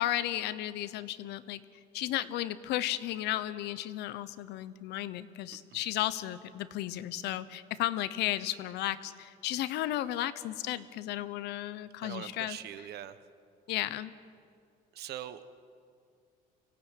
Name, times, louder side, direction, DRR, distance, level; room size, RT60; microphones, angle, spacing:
voice 1, 0.0-1.6 1.9-12.6 13.7-14.1, left 14 dB, 85° left, 15 dB, 1.0 m, -34 dB
voice 2, 12.0-13.2 14.9-15.5, right 11 dB, 75° right, 12 dB, 1.3 m, -42 dB
24.5 x 17.0 x 9.3 m, 2.3 s
cardioid pair, 110°, 17 cm